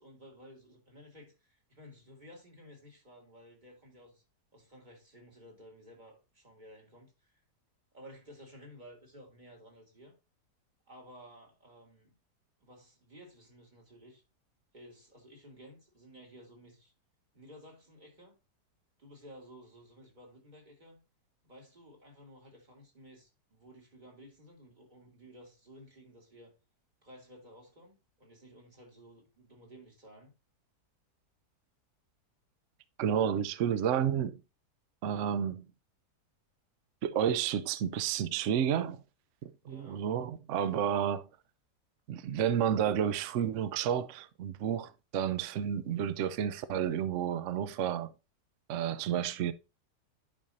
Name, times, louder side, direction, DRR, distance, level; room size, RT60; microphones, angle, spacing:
voice 1, 0.0-4.2 4.5-7.4 7.9-10.1 10.9-12.1 12.6-14.2 14.7-16.9 17.3-18.4 19.0-21.0 21.4-26.5 27.0-30.3 39.7-40.1, equal, 30° right, 2.6 m, -54 dB
voice 2, 33.0-34.4 35.0-35.7 37.0-39.0 39.4-41.3 42.1-48.1 48.7-49.5, right 9 dB, 60° right, 0.8 m, -31 dB
10.5 x 5.3 x 2.6 m
omnidirectional pair, 1.7 m